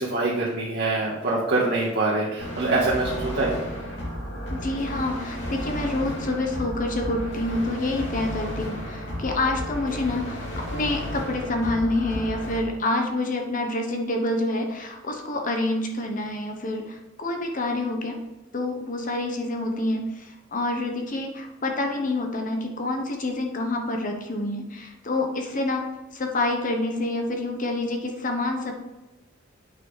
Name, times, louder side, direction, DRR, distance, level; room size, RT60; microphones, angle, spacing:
voice 1, 0.0-3.5, right 2 dB, 55° right, -6 dB, 1.6 m, -24 dB
sound 1, 2.4-12.6, equal, 65° left, 2.8 m, -33 dB
voice 2, 4.5-18.2 18.5-25.9 26.1-28.7, left 2 dB, 40° left, 3 dB, 1.0 m, -27 dB
8.6 x 6.0 x 3.3 m, 1.1 s
head